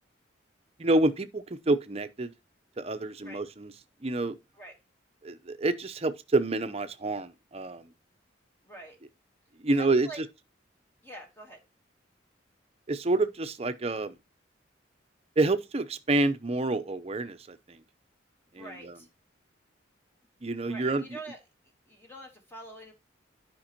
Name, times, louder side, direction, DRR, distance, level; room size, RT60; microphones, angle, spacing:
voice 1, 0.8-2.3 2.8-3.7 4.0-4.4 5.2-7.9 9.6-10.2 12.9-14.1 15.4-17.8 18.5-19.0 20.4-21.2, right 2 dB, 30° right, 0.6 m, -28 dB
voice 2, 8.6-9.0 9.7-10.2 11.0-11.6 18.5-19.1 20.7-21.4 21.9-22.9, right 1 dB, 10° left, 1.2 m, -45 dB
11.5 x 5.2 x 2.8 m
head